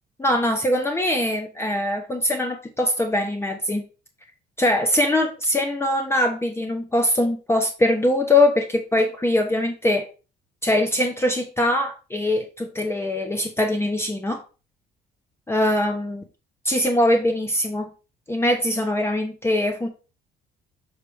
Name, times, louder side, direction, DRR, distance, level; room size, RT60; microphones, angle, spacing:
voice 1, 0.2-3.9 4.6-10.1 10.6-14.4 15.5-16.2 16.6-17.9 18.3-19.9, left 1 dB, 15° left, 4 dB, 0.8 m, -22 dB
6.6 x 3.3 x 4.6 m, 0.33 s
cardioid pair, 110°, 17 cm